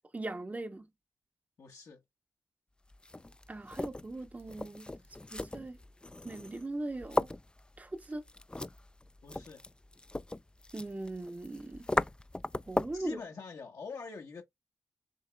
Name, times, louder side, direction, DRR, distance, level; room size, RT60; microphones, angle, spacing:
voice 1, 0.1-0.9 3.5-4.9 5.3-5.8 6.2-7.3 7.8-8.2 10.7-11.9 12.7-13.2, right 2 dB, 25° right, 0.7 m, -40 dB
voice 2, 1.6-2.0 9.2-9.6 12.9-14.4, left 5 dB, 70° left, 1.1 m, -44 dB
sound 1, 2.9-13.1, left 2 dB, 15° left, 0.3 m, -38 dB
6.7 x 2.9 x 2.2 m
cardioid pair, 55°, 6 cm